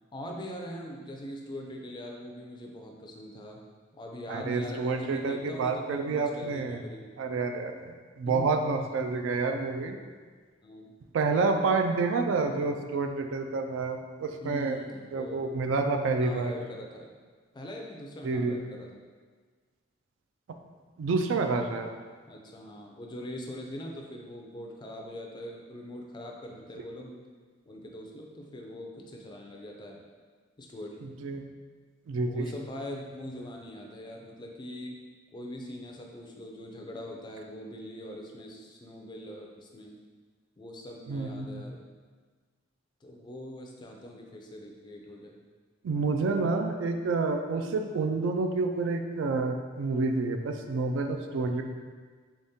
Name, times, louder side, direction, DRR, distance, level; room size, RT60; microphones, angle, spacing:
voice 1, 0.1-3.6 3.9-7.1 8.3-8.5 10.6-10.9 14.4-15.4 16.2-17.1 17.5-19.0 22.3-27.2 27.6-30.0 30.6-31.0 32.3-35.0 35.3-40.0 40.6-41.8 43.0-45.4, left 1 dB, 20° left, 1 dB, 0.3 m, -42 dB
voice 2, 4.3-6.8 7.2-10.0 11.1-14.8 15.1-16.5 18.2-18.6 21.0-21.9 31.2-31.4 32.1-32.5 41.1-41.6 45.8-51.6, right 3 dB, 65° right, 5 dB, 0.3 m, -29 dB
3.5 x 3.4 x 2.7 m, 1.5 s
head